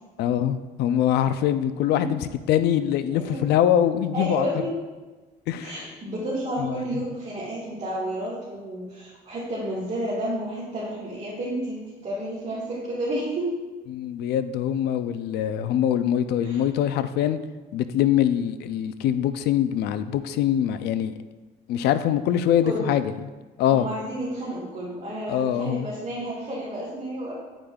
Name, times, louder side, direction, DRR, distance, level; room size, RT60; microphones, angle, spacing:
voice 1, 0.2-2.2 2.5-4.5 5.5-5.8 6.6-7.0 13.9-17.4 17.7-21.1 21.7-23.1 23.6-23.9 25.3-25.9, left 10 dB, 75° left, 12 dB, 0.4 m, -23 dB
voice 2, 4.1-4.7 5.6-13.5 16.4-16.6 22.6-22.9 23.7-27.4, right 1 dB, 40° right, -9 dB, 1.9 m, -31 dB
9.1 x 5.0 x 2.4 m, 1.2 s
cardioid pair, 110°, 17 cm